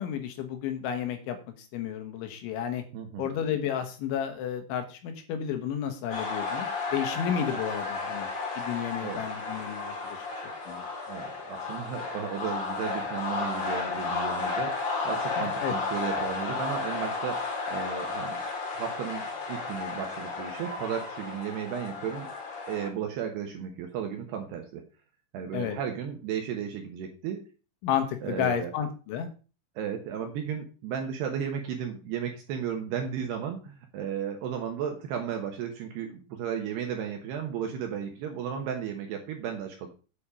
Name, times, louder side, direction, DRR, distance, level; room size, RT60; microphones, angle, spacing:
voice 1, 0.0-1.4 1.7-2.8 3.2-8.3 8.6-10.3 10.7-10.9 15.4-15.7 25.5-25.8 27.8-29.3, left 9 dB, 75° left, 7 dB, 3.4 m, -32 dB
voice 2, 2.9-3.3 7.5-7.6 9.0-9.2 11.1-14.7 15.0-18.4 18.8-22.3 22.7-24.8 25.3-27.4 28.2-28.7 29.8-39.9, right 8 dB, 70° right, 4 dB, 2.6 m, -34 dB
sound 1, 6.1-22.9, left 3 dB, 45° left, 2.7 m, -33 dB
8.5 x 7.9 x 4.9 m, 0.34 s
omnidirectional pair, 5.9 m